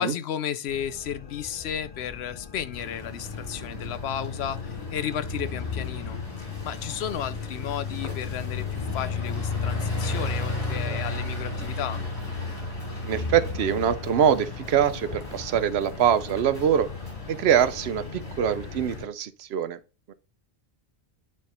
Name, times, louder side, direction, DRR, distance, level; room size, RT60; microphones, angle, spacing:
voice 1, 0.0-12.0, left 9 dB, 85° left, 0.9 m, -33 dB
sound 1, 0.7-19.0, left 5 dB, 35° left, 0.7 m, -45 dB
sound 2, 2.7-19.0, left 3 dB, 65° left, 2.9 m, -33 dB
voice 2, 13.0-16.9 17.3-19.8 20.1-20.2, right 9 dB, 80° right, 0.9 m, -24 dB
9.2 x 3.6 x 4.1 m
omnidirectional pair, 1.1 m